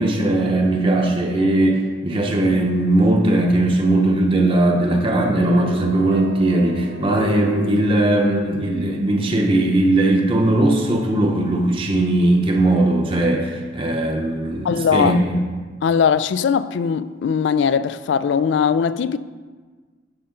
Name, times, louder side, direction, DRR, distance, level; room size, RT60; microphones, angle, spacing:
voice 1, 0.0-15.2, right 1 dB, 30° right, 0.8 m, -19 dB
sound 1, 5.3-11.5, left 1 dB, 60° right, 0.5 m, -33 dB
voice 2, 14.6-15.2 15.8-19.2, left 6 dB, 65° left, 0.3 m, -20 dB
12.5 x 5.4 x 3.8 m
head